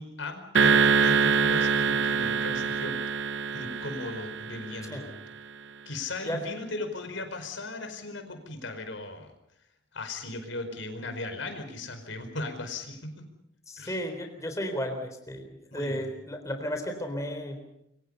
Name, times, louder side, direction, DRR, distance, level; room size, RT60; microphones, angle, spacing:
voice 1, 0.0-3.0 3.5-5.1 5.8-9.3 9.9-13.3 13.8-14.0 15.7-16.1, left 2 dB, 80° left, 7 dB, 4.9 m, -37 dB
sound 1, 0.5-5.0, right 5 dB, 70° right, 0.9 m, -24 dB
voice 2, 13.7-15.5 15.7-17.6, equal, 15° left, 5 dB, 3.7 m, -33 dB
27.5 x 24.0 x 5.6 m, 0.79 s
head